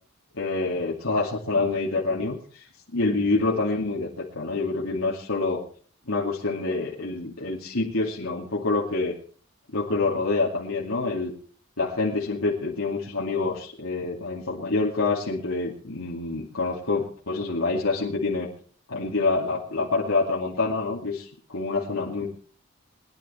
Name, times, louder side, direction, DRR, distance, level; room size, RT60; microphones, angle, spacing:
voice 1, 0.3-2.6 2.9-5.6 6.1-9.1 9.7-11.3 11.8-18.5 18.9-22.3, left 3 dB, 80° left, -4 dB, 2.6 m, -26 dB
21.0 x 10.5 x 4.4 m, 0.43 s
head